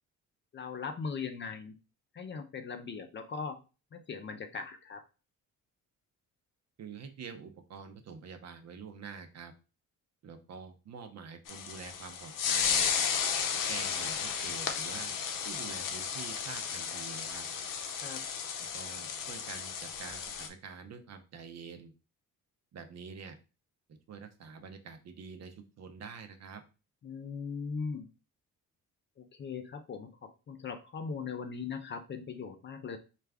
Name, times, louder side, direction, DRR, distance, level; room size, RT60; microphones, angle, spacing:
voice 1, 0.5-1.7 2.1-3.6 3.9-5.0 18.0-18.2 27.0-28.1 29.2-33.0, left 5 dB, 35° left, 7 dB, 0.5 m, -39 dB
voice 2, 6.8-9.5 10.2-12.9 13.7-15.1 15.4-17.5 18.7-21.9 22.7-23.4 23.9-26.6, right 6 dB, 50° right, 7 dB, 0.7 m, -46 dB
sound 1, 11.5-20.5, left 7 dB, 70° left, 0.7 m, -34 dB
4.5 x 2.5 x 3.4 m, 0.32 s
cardioid pair, 140°, 34 cm